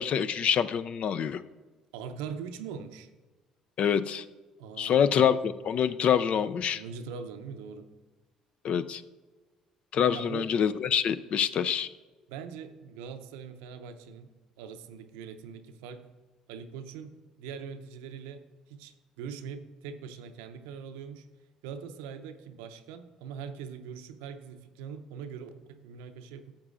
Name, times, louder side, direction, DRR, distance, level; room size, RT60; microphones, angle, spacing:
voice 1, 0.0-1.4 3.8-4.2 4.8-6.8 8.6-9.0 9.9-11.9, left 8 dB, 50° left, 14 dB, 0.4 m, -26 dB
voice 2, 1.9-3.1 4.6-5.4 6.7-7.9 10.1-10.5 12.3-14.3 14.6-16.1 16.5-21.3 21.6-26.6, right 6 dB, 75° right, 10 dB, 0.6 m, -42 dB
14.0 x 7.4 x 2.5 m, 1.3 s
hypercardioid pair, 55°, 2 cm